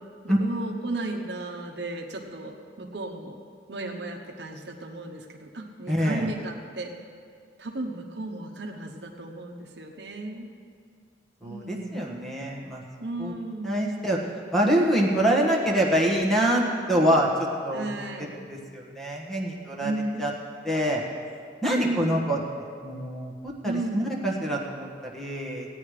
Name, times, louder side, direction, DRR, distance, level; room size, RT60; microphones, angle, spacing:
voice 1, 0.2-3.4 3.7-6.9 7.6-10.5 11.4-12.1 13.0-13.8 17.7-18.3 19.8-20.3 21.7-22.2 23.6-24.2, right 2 dB, 60° right, 2 dB, 1.0 m, -34 dB
voice 2, 5.9-6.3 11.4-12.8 13.2-13.3 13.6-14.2 14.5-17.3 17.6-18.0 18.3-19.9 20.2-20.3 20.6-21.0 21.6-22.4 22.8-23.3 23.6-25.7, right 1 dB, ahead, -2 dB, 1.4 m, -25 dB
16.5 x 9.7 x 4.9 m, 2.2 s
head